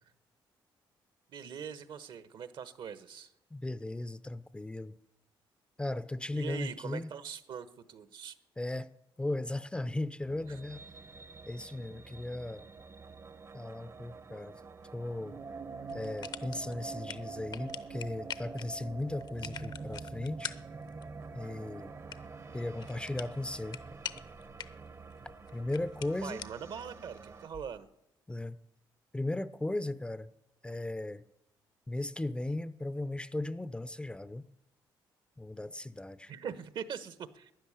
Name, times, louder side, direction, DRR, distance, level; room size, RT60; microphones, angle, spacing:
voice 1, 1.3-3.3 6.3-8.3 10.5-10.6 26.2-27.9 36.3-37.5, right 7 dB, 65° right, 1.2 m, -42 dB
voice 2, 3.5-4.9 5.8-7.1 8.6-8.9 9.2-10.8 11.5-12.7 13.5-14.6 14.9-15.4 15.9-20.5 21.3-21.9 22.5-23.8 25.5-26.4 28.3-28.6 29.1-30.3 30.6-31.2 31.9-34.5 35.4-36.3, left 2 dB, 10° left, 0.5 m, -37 dB
sound 1, 10.2-27.5, right 4 dB, 35° right, 0.8 m, -46 dB
sound 2, 15.9-27.8, left 7 dB, 55° left, 0.8 m, -47 dB
12.5 x 10.0 x 9.9 m
cardioid pair, 100°, 9 cm